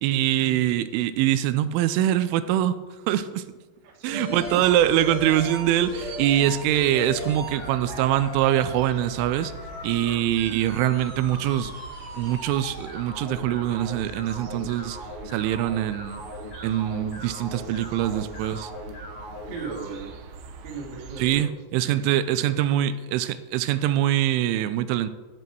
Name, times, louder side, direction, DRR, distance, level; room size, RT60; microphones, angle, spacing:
voice 1, 0.0-2.8 3.1-3.4 4.0-9.5 9.8-11.7 12.2-15.0 15.3-16.2 16.6-18.7 21.2-25.1, right 12 dB, 90° right, 12 dB, 3.1 m, -23 dB
voice 2, 3.8-4.6 6.4-6.6 19.5-20.2 20.6-21.6 21.8-22.9, right 5 dB, 45° right, -1 dB, 1.4 m, -38 dB
sound 1, 4.0-19.8, left 1 dB, 40° left, 2.5 m, -38 dB
sound 2, 4.3-21.3, right 4 dB, 70° right, 2.9 m, -43 dB
14.5 x 8.6 x 4.6 m, 1.2 s
omnidirectional pair, 5.5 m